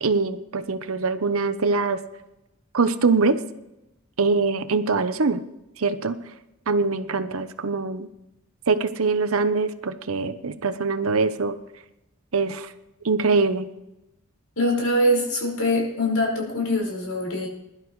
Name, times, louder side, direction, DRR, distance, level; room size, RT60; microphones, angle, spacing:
voice 1, 0.0-2.0 2.7-3.4 4.2-5.4 5.8-6.2 6.7-8.1 8.7-11.6 12.3-12.7 13.0-13.7, right 4 dB, 70° right, 11 dB, 0.8 m, -23 dB
voice 2, 14.6-17.5, left 1 dB, 75° left, -1 dB, 5.2 m, -23 dB
21.0 x 11.5 x 3.2 m, 0.92 s
head